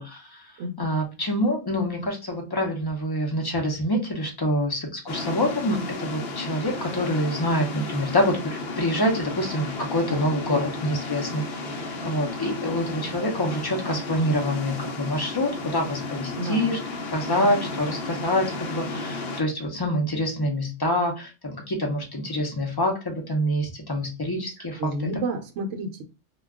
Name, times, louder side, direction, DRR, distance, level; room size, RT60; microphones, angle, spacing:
voice 1, 0.0-0.5 0.8-16.8 17.1-24.9, left 1 dB, 30° left, 1 dB, 0.4 m, -26 dB
sound 1, 5.1-19.4, left 3 dB, 60° left, 0.7 m, -33 dB
voice 2, 16.4-16.7 17.3-17.5 24.8-26.0, right 2 dB, 70° right, 4 dB, 0.9 m, -31 dB
2.3 x 2.2 x 3.4 m, 0.29 s
omnidirectional pair, 1.3 m